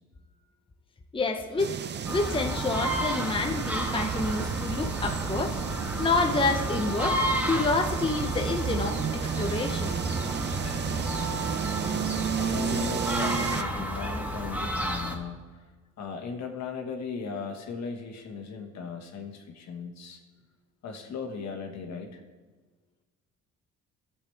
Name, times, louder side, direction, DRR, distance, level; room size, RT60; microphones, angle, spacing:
voice 1, 1.1-1.8 2.1-9.9, left 3 dB, 15° left, 4 dB, 0.8 m, -28 dB
sound 1, 1.6-13.6, right 7 dB, 35° right, 0.5 m, -32 dB
sound 2, 2.0-15.2, equal, 5° right, 1.3 m, -32 dB
voice 2, 11.9-15.6 16.0-20.2 20.8-22.2, left 5 dB, 65° left, 3 dB, 1.5 m, -37 dB
14.0 x 7.1 x 3.4 m, 1.3 s
cardioid pair, 90°, 30 cm